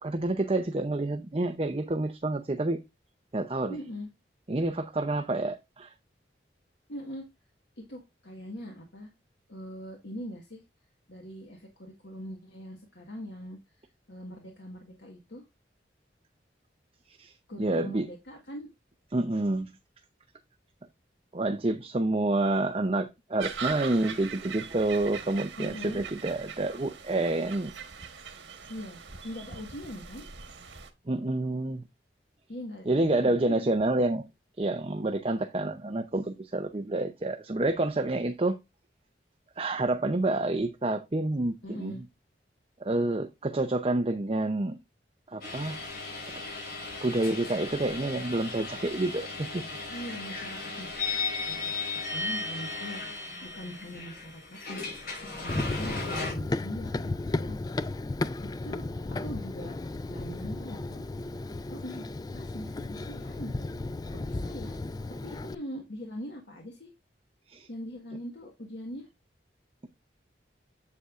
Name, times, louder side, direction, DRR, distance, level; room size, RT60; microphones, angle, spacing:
voice 1, 0.0-2.8 3.3-3.8 4.5-5.9 17.1-18.1 19.1-19.7 21.3-27.7 31.1-31.8 32.9-34.3 34.6-38.6 39.6-41.9 42.8-44.8 45.3-45.9 47.0-49.8 67.5-67.7, right 2 dB, 30° right, 0.6 m, -28 dB
voice 2, 3.7-4.1 6.9-7.3 7.8-9.1 9.5-10.6 11.1-13.8 14.1-15.4 17.5-18.7 25.6-26.0 28.7-30.3 32.5-33.7 41.6-42.0 49.9-50.9 51.2-51.7 52.1-57.6 58.6-59.8 60.1-61.1 61.7-62.0 62.3-63.7 64.1-64.8 65.2-66.9 67.7-69.1, equal, 75° left, 1.5 m, -42 dB
sound 1, 23.4-30.9, right 6 dB, 90° right, 1.4 m, -41 dB
sound 2, 45.4-56.3, left 3 dB, 55° left, 4.9 m, -36 dB
Run, 55.5-65.5, left 2 dB, 20° left, 0.3 m, -34 dB
8.3 x 7.7 x 2.5 m
head